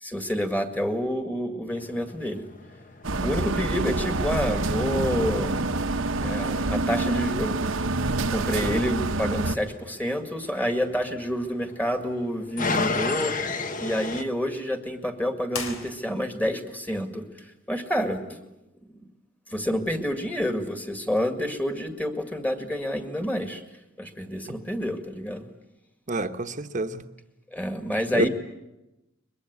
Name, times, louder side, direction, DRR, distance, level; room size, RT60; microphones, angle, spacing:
voice 1, 0.0-2.5 3.2-5.6 6.2-7.7 8.0-13.4 13.8-18.4 19.5-23.6 24.0-25.5 27.5-28.3, equal, 10° left, 7 dB, 2.0 m, -28 dB
sound 1, 1.7-14.2, left 3 dB, 40° left, 1.2 m, -36 dB
sound 2, 3.0-9.6, right 2 dB, 75° right, 1.1 m, -27 dB
sound 3, 15.5-16.5, left 4 dB, 80° left, 3.7 m, -36 dB
voice 2, 26.1-27.0 28.1-28.3, right 2 dB, 40° right, 9 dB, 1.2 m, -27 dB
22.5 x 22.5 x 9.6 m, 0.95 s
head